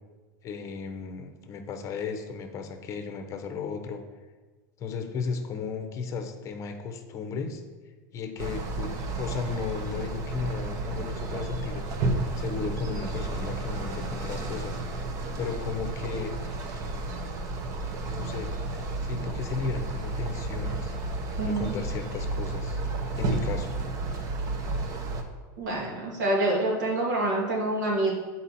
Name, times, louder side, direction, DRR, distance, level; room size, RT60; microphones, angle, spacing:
voice 1, 0.4-4.0 4.8-7.6 8.1-11.8 12.4-14.8 15.4-16.4 18.1-18.5 19.0-21.0 21.4-22.8 23.2-23.8, left 5 dB, 30° left, 6 dB, 0.8 m, -35 dB
sound 1, 8.4-25.2, right 2 dB, 35° right, 0.8 m, -32 dB
voice 2, 21.4-21.7 25.6-28.1, right 2 dB, 85° right, -3 dB, 2.2 m, -26 dB
8.3 x 4.2 x 4.2 m, 1.3 s
supercardioid pair, 140°, 10 cm